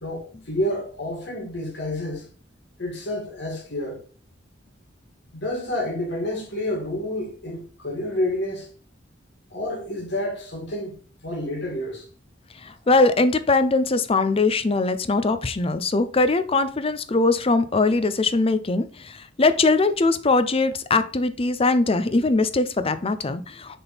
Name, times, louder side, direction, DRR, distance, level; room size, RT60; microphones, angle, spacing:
voice 1, 0.0-2.3 2.8-4.0 5.3-8.7 9.5-11.0 11.2-12.1, left 1 dB, 65° left, 2.2 m, -29 dB
voice 2, 12.6-23.8, left 3 dB, 30° left, 0.6 m, -21 dB
6.9 x 3.7 x 4.1 m
head